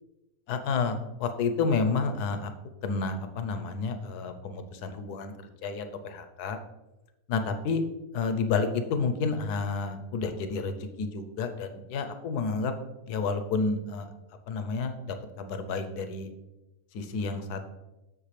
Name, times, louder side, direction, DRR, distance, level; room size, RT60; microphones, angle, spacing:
voice 1, 0.5-2.5 2.8-5.3 5.6-6.6 7.3-7.8 8.1-12.7 13.1-14.1 14.5-16.3 16.9-17.7, left 4 dB, 75° left, 8 dB, 1.3 m, -30 dB
7.4 x 6.6 x 3.3 m, 0.98 s
omnidirectional pair, 1.7 m